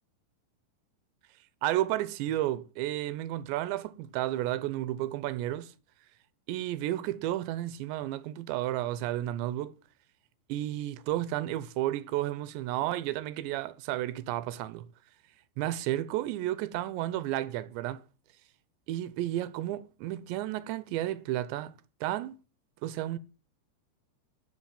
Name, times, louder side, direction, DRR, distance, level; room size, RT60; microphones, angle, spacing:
voice 1, 1.6-5.7 6.5-9.8 10.5-14.9 15.6-18.0 18.9-21.7 22.0-22.4 22.8-23.2, right 14 dB, 85° right, 3.0 m, -32 dB
12.0 x 6.4 x 8.9 m
omnidirectional pair, 5.2 m